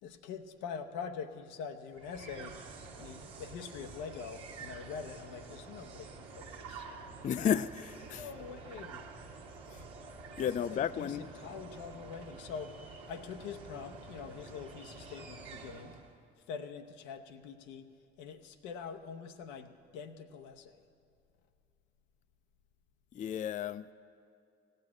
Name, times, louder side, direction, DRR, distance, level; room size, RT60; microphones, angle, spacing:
voice 1, 0.0-2.6 3.0-6.9 8.1-9.1 10.4-12.8 13.0-16.0 16.5-17.9 18.2-20.8, left 6 dB, 75° left, 6 dB, 0.8 m, -44 dB
sound 1, 1.9-16.2, right 4 dB, 75° right, 1.3 m, -49 dB
voice 2, 7.2-8.3 9.7-9.8 10.4-11.2 23.1-23.9, left 8 dB, 25° left, 14 dB, 0.4 m, -33 dB
16.0 x 6.6 x 9.8 m, 2.5 s
hypercardioid pair, 45°, 31 cm